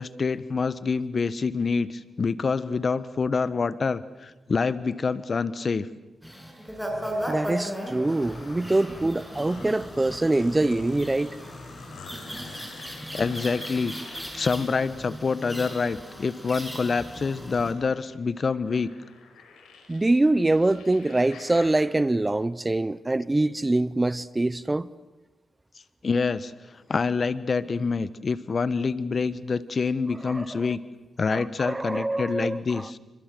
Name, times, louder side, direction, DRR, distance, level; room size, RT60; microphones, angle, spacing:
voice 1, 0.0-5.9 13.1-13.9 14.3-18.9 26.0-26.5 26.9-30.8 31.2-33.0, left 4 dB, 55° left, 1.3 m, -26 dB
sound 1, 6.2-17.7, equal, ahead, 6.7 m, -37 dB
sound 2, 6.9-21.9, left 4 dB, 90° left, 5.5 m, -48 dB
voice 2, 7.3-11.3 19.9-24.9 30.2-30.8 31.3-32.9, right 2 dB, 25° right, 0.9 m, -24 dB
27.5 x 25.5 x 7.9 m
cardioid pair, 55°, 0 cm